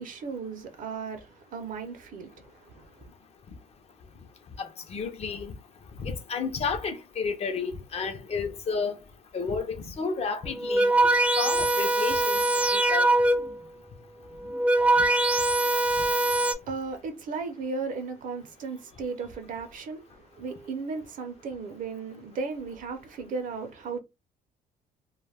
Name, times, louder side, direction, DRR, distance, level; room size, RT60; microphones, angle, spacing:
voice 1, 0.0-3.1 16.1-24.0, right 4 dB, 50° right, 0.6 m, -36 dB
voice 2, 4.6-5.5 6.0-9.0 9.3-10.9 11.4-12.4 12.7-13.1, left 5 dB, 40° left, 0.6 m, -31 dB
sound 1, 10.5-13.7 14.3-16.5, right 2 dB, 5° right, 0.3 m, -23 dB
2.2 x 2.1 x 3.3 m
cardioid pair, 110°, 17 cm